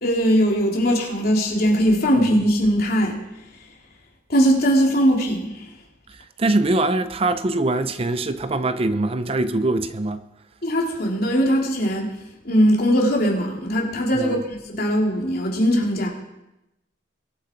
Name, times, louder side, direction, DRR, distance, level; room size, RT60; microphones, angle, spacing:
voice 1, 0.0-3.2 4.3-5.7 10.6-12.1 12.4-14.4 14.7-16.1, equal, 55° left, 3.2 m, -20 dB
voice 2, 6.4-10.2 14.2-14.4, right 2 dB, 30° right, 0.6 m, -22 dB
22.0 x 8.8 x 4.5 m
head